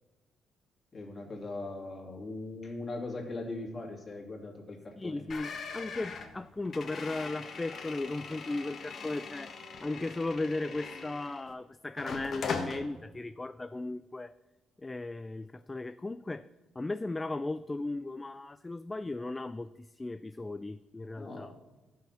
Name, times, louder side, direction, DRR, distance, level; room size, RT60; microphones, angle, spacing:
voice 1, 0.9-5.2 21.2-21.7, left 2 dB, 35° left, 0 dB, 2.4 m, -40 dB
voice 2, 5.0-9.5 9.8-14.3 14.8-16.5 16.8-21.5, left 2 dB, 20° left, 13 dB, 0.3 m, -36 dB
sound 1, 5.3-11.5 12.0-12.8, left 5 dB, 55° left, 1.2 m, -41 dB
13.5 x 5.7 x 5.7 m, 1.1 s
cardioid pair, 90°, 0 cm